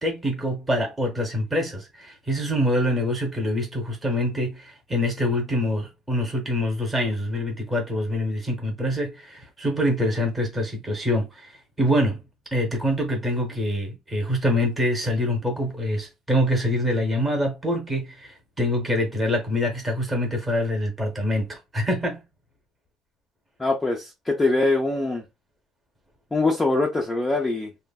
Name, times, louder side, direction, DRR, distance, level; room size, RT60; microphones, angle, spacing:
voice 1, 0.0-12.2 12.5-22.2, left 1 dB, 10° right, 0.7 m, -25 dB
voice 2, 23.6-25.2 26.3-27.7, left 2 dB, 10° left, 0.3 m, -23 dB
3.0 x 2.0 x 2.2 m
cardioid pair, 180°, 0 cm